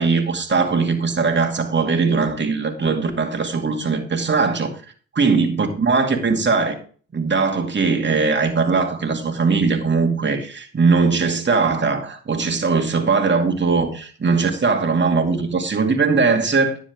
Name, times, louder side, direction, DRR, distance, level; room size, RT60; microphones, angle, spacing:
voice 1, 0.0-4.7 5.2-6.7 7.1-16.8, right 4 dB, 35° right, 2.2 m, -20 dB
10.5 x 7.1 x 3.6 m
hypercardioid pair, 45°, 33 cm